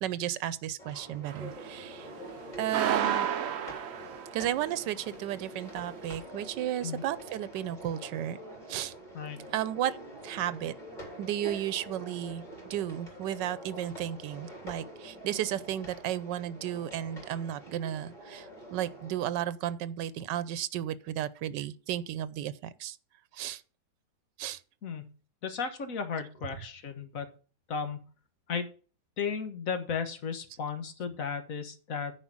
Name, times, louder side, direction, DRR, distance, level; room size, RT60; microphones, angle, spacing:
voice 1, 0.0-2.1 2.6-3.3 4.3-8.4 8.7-8.9 9.5-10.0 10.2-10.7 11.2-12.4 12.7-23.0 23.3-23.6 24.4-24.6, right 11 dB, 90° right, 1.3 m, -33 dB
sound 1, 0.8-19.4, right 1 dB, 25° left, 3.8 m, -46 dB
sound 2, 1.2-1.6 2.7-4.5, right 9 dB, 60° right, 0.7 m, -31 dB
voice 2, 25.4-27.3 27.7-28.0 28.5-28.7 29.2-32.1, left 6 dB, 55° left, 1.6 m, -34 dB
9.8 x 5.0 x 7.3 m
omnidirectional pair, 1.8 m